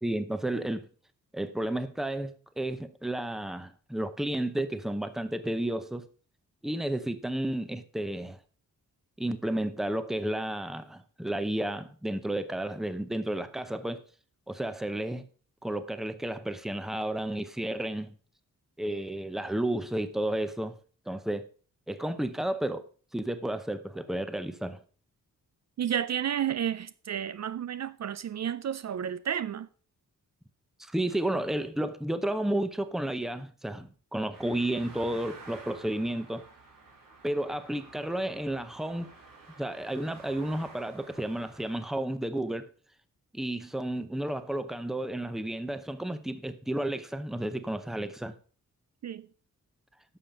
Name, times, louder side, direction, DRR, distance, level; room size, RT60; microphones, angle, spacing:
voice 1, 0.0-0.9 1.3-6.0 6.6-8.4 9.2-14.0 14.5-15.3 15.6-18.1 18.8-20.8 21.1-21.5 21.9-22.8 23.1-24.8 30.8-36.4 37.2-39.1 39.6-42.7 43.3-48.3, right 1 dB, ahead, 0.6 m, -32 dB
voice 2, 25.8-29.7 49.0-49.3, right 9 dB, 55° right, 0.4 m, -31 dB
sound 1, 34.3-41.9, right 3 dB, 80° right, 4.1 m, -51 dB
11.5 x 7.0 x 5.1 m
wide cardioid pair, 175°, 33 cm